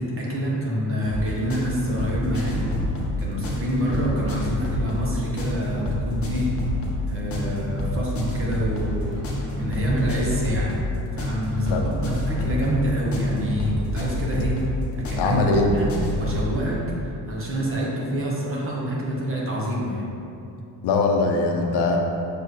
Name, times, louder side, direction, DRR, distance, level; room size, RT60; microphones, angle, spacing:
voice 1, 0.0-2.7 3.2-6.5 7.1-9.1 9.6-10.7 11.2-14.6 15.0-15.4 15.7-15.9 16.2-20.0, equal, 30° right, -4 dB, 1.1 m, -27 dB
sound 1, 1.0-16.5, left 1 dB, 30° left, 1.1 m, -28 dB
voice 2, 15.2-15.7 20.8-22.0, left 3 dB, 60° left, 2 dB, 0.7 m, -21 dB
6.5 x 4.7 x 3.2 m, 2.7 s
cardioid pair, 140°, 44 cm